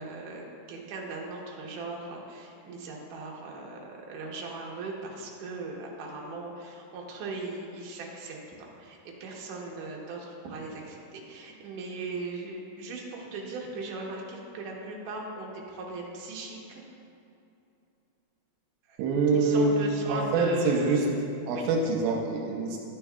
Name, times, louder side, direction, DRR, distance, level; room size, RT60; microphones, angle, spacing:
voice 1, 0.0-16.8 18.9-19.0 19.3-21.1 21.5-21.7, right 3 dB, 70° right, -1 dB, 2.4 m, -38 dB
voice 2, 19.0-19.7 20.1-21.0 21.5-22.8, right 3 dB, 90° right, 0 dB, 2.5 m, -25 dB
11.5 x 8.4 x 2.3 m, 2.7 s
omnidirectional pair, 4.3 m